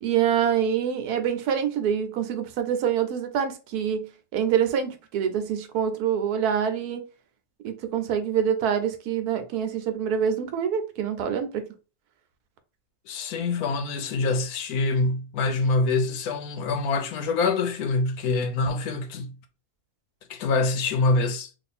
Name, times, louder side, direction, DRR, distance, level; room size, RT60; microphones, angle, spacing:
voice 1, 0.0-4.1 4.3-7.0 7.6-11.6, right 8 dB, 85° right, 1.2 m, -25 dB
voice 2, 13.1-19.3 20.3-21.5, left 3 dB, 75° left, 1.1 m, -25 dB
3.0 x 2.5 x 4.1 m
omnidirectional pair, 1.6 m